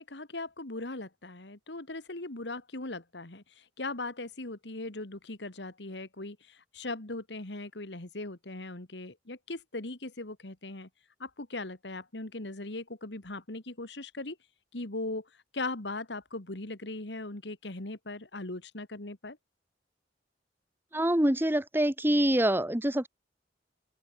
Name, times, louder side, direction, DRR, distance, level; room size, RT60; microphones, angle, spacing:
voice 1, 0.0-10.9 11.2-14.4 14.7-19.4, left 2 dB, 70° left, 2.2 m, -39 dB
voice 2, 20.9-23.1, right 1 dB, 10° right, 1.8 m, -25 dB
open air
head